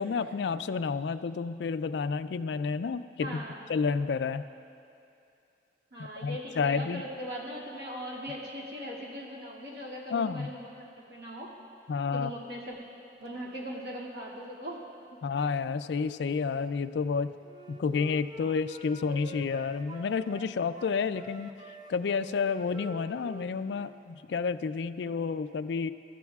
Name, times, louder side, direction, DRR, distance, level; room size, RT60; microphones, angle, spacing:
voice 1, 0.0-3.4 3.7-4.4 6.0-7.0 10.1-10.5 11.9-12.3 15.2-17.3 17.7-21.5 21.9-25.9, left 5 dB, 75° left, 12 dB, 0.3 m, -30 dB
voice 2, 3.2-3.6 5.9-11.5 12.1-12.8 13.2-14.8 15.1-15.2, equal, 65° right, -5 dB, 2.3 m, -40 dB
Wind instrument woodwind instrument, 17.4-20.5 20.7-24.1, equal, 25° right, 0.5 m, -47 dB
22.5 x 13.5 x 2.4 m, 2.7 s
head